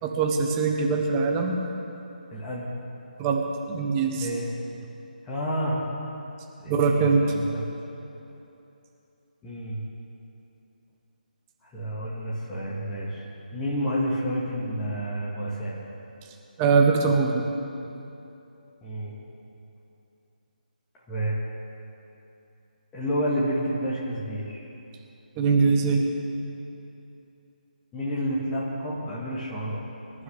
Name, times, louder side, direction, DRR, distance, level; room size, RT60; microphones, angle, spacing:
voice 1, 0.0-1.6 3.2-4.3 6.7-7.2 16.6-17.4 25.4-26.1, right 4 dB, 15° right, 1 dB, 1.1 m, -22 dB
voice 2, 2.3-2.7 4.2-4.5 5.2-5.8 6.6-7.6 9.4-9.8 11.6-13.2 13.5-15.8 18.8-19.2 21.1-21.4 22.9-24.6 27.9-29.8, equal, 10° left, -6 dB, 1.9 m, -29 dB
25.0 x 11.5 x 3.6 m, 2.8 s
figure-of-eight pair, 150°, 5 cm